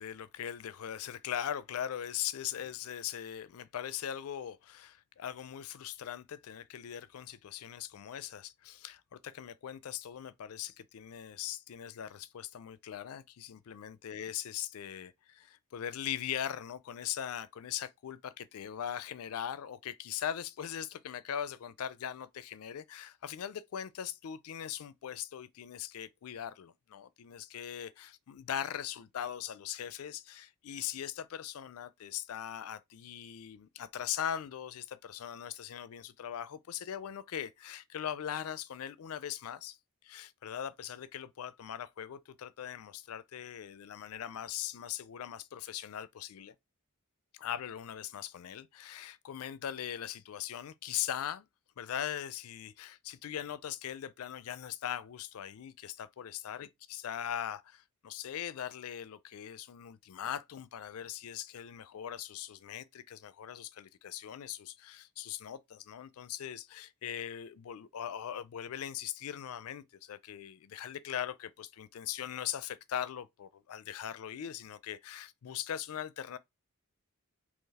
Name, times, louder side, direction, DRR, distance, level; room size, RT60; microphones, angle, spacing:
voice 1, 0.0-39.8 40.0-46.5 47.3-51.4 51.8-76.4, left 10 dB, 70° left, 0.4 m, -40 dB
3.9 x 3.0 x 4.0 m
head